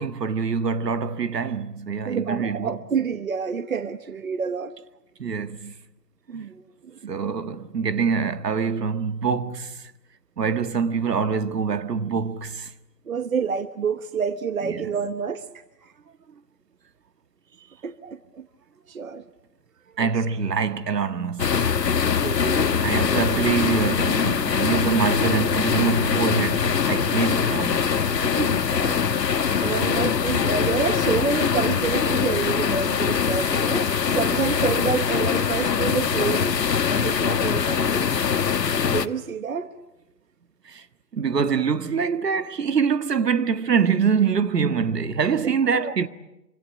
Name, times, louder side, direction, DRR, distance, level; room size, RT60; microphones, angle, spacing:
voice 1, 0.0-2.8 5.2-5.7 6.3-6.5 7.1-9.9 10.4-12.7 14.7-14.9 20.0-21.8 22.8-28.2 29.6-30.0 40.6-40.8 41.1-46.1, right 6 dB, 70° right, 1.7 m, -25 dB
voice 2, 2.0-4.7 6.3-7.1 13.1-15.5 17.8-18.4 18.9-19.2 20.0-20.1 22.2-23.3 28.2-29.0 29.6-36.5 36.9-38.0 38.9-39.7 45.7-45.9, right 6 dB, 55° right, 1.3 m, -28 dB
sound 1, 21.4-39.1, left 7 dB, 75° left, 1.5 m, -23 dB
26.0 x 25.0 x 8.8 m
hypercardioid pair, 180°, 50 cm